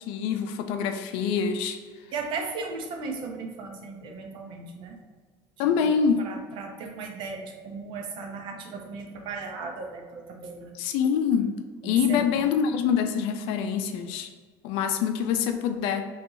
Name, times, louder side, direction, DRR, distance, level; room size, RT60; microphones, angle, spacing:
voice 1, 0.1-1.8 5.6-6.3 10.8-11.6 11.8-14.3 14.6-16.1, left 7 dB, 75° left, 7 dB, 0.4 m, -25 dB
voice 2, 2.1-5.0 5.8-10.8 11.8-12.5, right 4 dB, 60° right, 3 dB, 0.7 m, -36 dB
4.5 x 3.1 x 2.6 m, 1.5 s
supercardioid pair, 110°, 9 cm